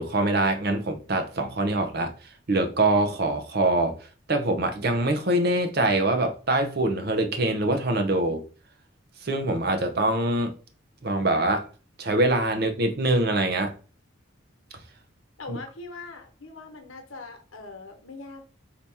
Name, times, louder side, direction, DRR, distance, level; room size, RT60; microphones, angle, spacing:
voice 1, 0.0-2.1 2.5-4.0 4.3-8.4 9.2-10.5 11.0-11.7 12.0-13.7 15.5-15.6, right 2 dB, 50° right, 0.6 m, -24 dB
voice 2, 15.4-18.4, left 3 dB, 80° left, 1.1 m, -41 dB
4.1 x 2.9 x 3.4 m
head